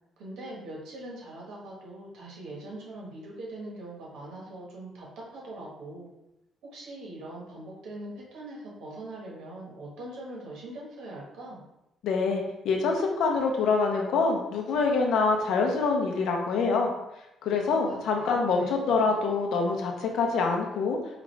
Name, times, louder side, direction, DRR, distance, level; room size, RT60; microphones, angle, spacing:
voice 1, 0.2-6.1 6.6-11.6 17.8-19.1, right 1 dB, 80° right, -3 dB, 1.4 m, -42 dB
voice 2, 12.0-16.9 17.4-21.0, left 4 dB, 70° left, 2 dB, 0.7 m, -25 dB
4.9 x 2.5 x 3.2 m, 0.88 s
cardioid pair, 140°, 0 cm